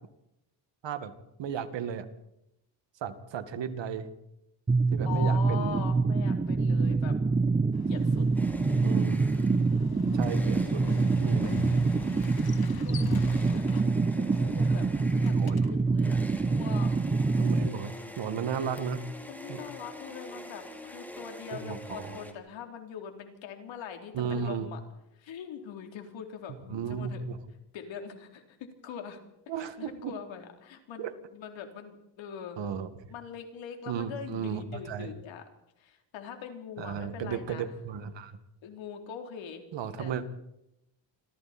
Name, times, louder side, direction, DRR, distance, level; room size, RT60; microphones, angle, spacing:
voice 1, 1.4-2.1 3.0-4.1 4.9-5.8 8.8-9.2 10.1-11.5 15.3-15.7 17.4-19.0 19.5-19.6 21.5-22.2 24.1-24.7 26.7-27.4 29.5-30.1 31.0-31.1 32.6-32.9 33.9-35.1 36.8-38.3 39.7-40.2, right 7 dB, 70° right, 10 dB, 2.2 m, -34 dB
sound 1, 4.7-17.7, right 4 dB, 15° right, 0.8 m, -26 dB
voice 2, 5.0-7.1 7.9-8.3 12.0-13.6 14.1-16.2 16.5-16.9 17.6-18.1 19.3-24.8 25.1-27.2 27.7-29.2 29.6-32.6 33.1-35.4 35.8-37.7 38.6-39.6 40.0-40.1, left 7 dB, 90° left, 4 dB, 3.7 m, -43 dB
Motorcycle, 7.7-16.1, left 7 dB, 55° left, 1.9 m, -43 dB
sound 2, 8.3-9.8 10.2-22.3, equal, 5° left, 3.8 m, -46 dB
28.0 x 22.5 x 4.4 m, 0.84 s
cardioid pair, 100°, 45 cm